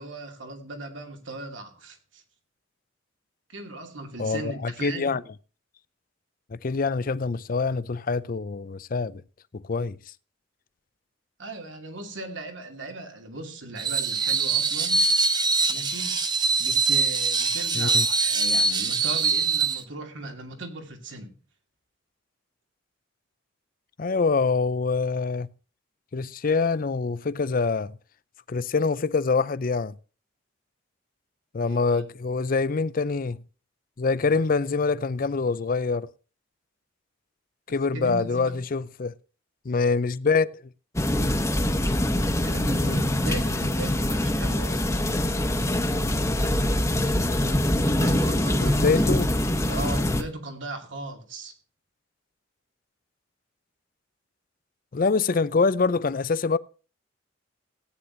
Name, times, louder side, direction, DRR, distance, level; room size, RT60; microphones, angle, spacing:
voice 1, 0.0-2.2 3.5-5.1 11.4-15.1 15.7-16.2 16.6-21.3 31.6-32.0 37.9-38.5 42.4-44.9 47.8-49.0 49.7-51.5, right 2 dB, 75° right, 2.6 m, -38 dB
voice 2, 4.2-5.2 6.5-9.2 9.5-10.0 17.7-18.1 24.0-25.5 26.1-27.9 28.5-29.9 31.5-33.4 34.0-36.1 37.7-39.1 39.7-40.5 42.8-43.0 48.6-49.3 54.9-56.6, left 4 dB, 45° left, 0.5 m, -25 dB
Screech, 13.8-19.8, right 4 dB, 25° right, 0.9 m, -23 dB
sound 1, 41.0-50.2, left 1 dB, 15° left, 1.1 m, -24 dB
16.5 x 9.7 x 2.7 m
head